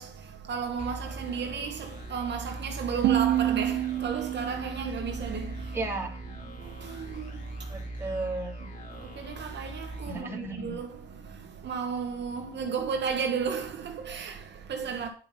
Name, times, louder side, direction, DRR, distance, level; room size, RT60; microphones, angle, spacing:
voice 1, 0.0-5.8 6.6-7.7 8.6-15.1, right 6 dB, 60° right, 2.0 m, -34 dB
sound 1, 0.8-11.1, right 1 dB, 40° left, 3.7 m, -41 dB
sound 2, 3.0-6.0, right 13 dB, 90° right, 0.9 m, -29 dB
voice 2, 5.7-6.1 7.7-8.7 10.1-10.7, right 2 dB, 10° right, 3.2 m, -34 dB
10.5 x 5.7 x 5.7 m
cardioid pair, 90°, 20 cm